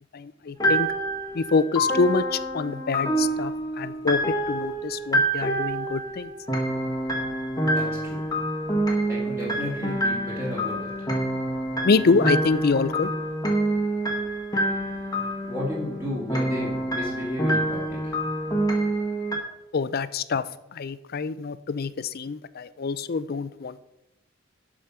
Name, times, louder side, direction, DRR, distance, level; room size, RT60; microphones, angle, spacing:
voice 1, 0.1-0.9 1.3-4.2 4.5-6.3 11.8-13.1 19.7-20.4 20.7-23.8, left 4 dB, 50° left, 15 dB, 0.4 m, -25 dB
sound 1, 0.6-19.4, right 1 dB, 20° left, 1.2 m, -27 dB
voice 2, 7.7-8.5 9.1-11.2 15.4-18.3, left 1 dB, 15° right, -7 dB, 2.4 m, -33 dB
12.5 x 5.0 x 5.7 m, 0.95 s
head